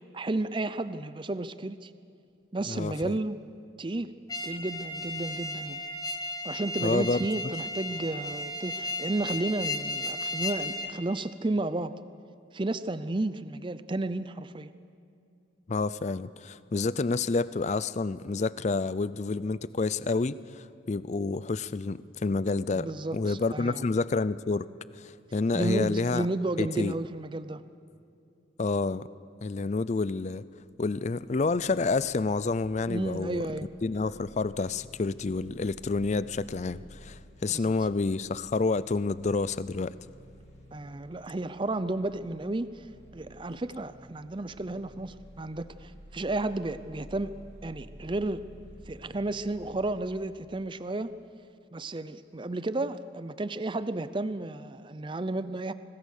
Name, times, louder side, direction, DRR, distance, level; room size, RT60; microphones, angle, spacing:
voice 1, 0.1-1.9 2.5-3.4 3.8-4.1 4.4-5.8 6.4-11.9 12.5-14.7 22.7-23.8 25.5-27.6 32.9-33.7 37.5-37.7 40.7-42.9 43.1-47.3 47.6-48.5 48.9-51.1 51.7-55.7, right 2 dB, 25° right, 13 dB, 0.5 m, -32 dB
voice 2, 2.7-3.2 6.8-7.3 15.7-22.9 23.1-24.7 24.9-26.3 26.6-27.0 28.6-29.1 29.4-30.4 30.8-33.4 33.8-39.9, left 3 dB, 35° left, 17 dB, 0.4 m, -29 dB
sound 1, 4.3-10.9, left 2 dB, 20° left, 1.2 m, -35 dB
sound 2, 30.7-50.2, equal, 60° right, 3.4 m, -52 dB
25.5 x 19.5 x 6.6 m, 2.6 s
head